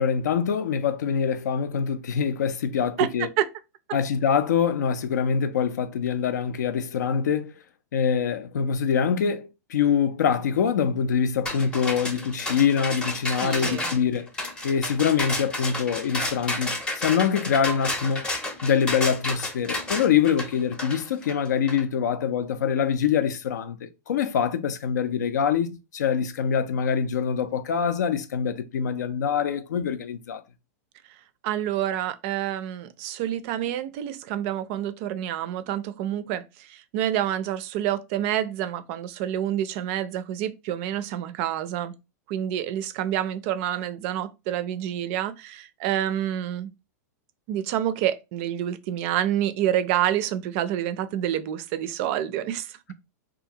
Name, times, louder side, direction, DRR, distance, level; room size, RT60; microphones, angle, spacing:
voice 1, 0.0-3.3 3.9-7.5 7.9-14.3 14.6-18.2 18.6-30.4, left 7 dB, 90° left, 0.4 m, -24 dB
voice 2, 3.0-3.5 13.4-13.9 31.4-41.9 42.3-46.7 47.5-52.9, right 11 dB, 50° right, 0.4 m, -28 dB
sound 1, 11.5-21.8, left 2 dB, 10° left, 0.5 m, -31 dB
2.7 x 2.4 x 2.7 m
hypercardioid pair, 130°, 9 cm